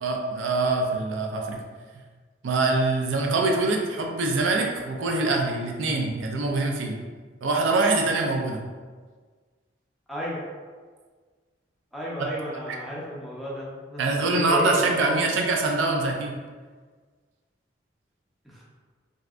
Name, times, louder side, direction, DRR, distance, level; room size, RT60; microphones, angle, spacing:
voice 1, 0.0-1.6 2.4-7.0 7.4-8.6 12.7-12.8 14.0-16.3, right 3 dB, 85° right, 1 dB, 0.4 m, -24 dB
voice 2, 10.1-10.4 11.9-15.3 18.4-18.6, left 1 dB, ahead, -7 dB, 0.6 m, -32 dB
3.2 x 2.6 x 2.4 m, 1.5 s
head